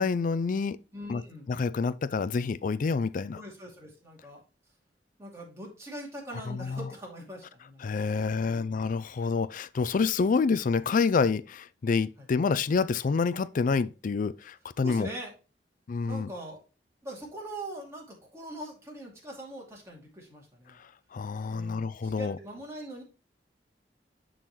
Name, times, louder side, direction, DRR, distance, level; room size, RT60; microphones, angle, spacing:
voice 1, 0.0-0.8 1.1-1.2 1.5-3.4 6.5-6.9 7.8-15.1 15.9-16.3 20.8-22.4, left 4 dB, 50° left, 0.4 m, -28 dB
voice 2, 0.9-1.5 3.3-4.4 5.2-9.2 9.9-10.1 12.2-12.3 14.8-15.3 16.0-16.6 17.0-20.8 21.5-23.0, right 1 dB, 15° right, 2.5 m, -42 dB
11.0 x 3.9 x 3.1 m
head